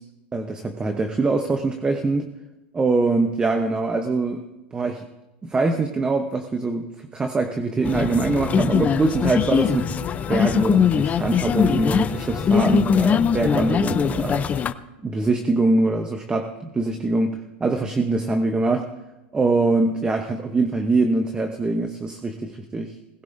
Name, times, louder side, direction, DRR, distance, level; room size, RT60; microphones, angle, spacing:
voice 1, 0.3-2.3 2.7-4.4 4.7-5.0 5.4-9.9 10.3-14.5 15.0-18.9 19.3-22.9, right 3 dB, 15° right, 6 dB, 0.9 m, -23 dB
sound 1, 7.8-14.7, left 7 dB, 20° left, 0.6 m, -21 dB
19.0 x 17.0 x 2.7 m, 1.0 s
hypercardioid pair, 125°, 6 cm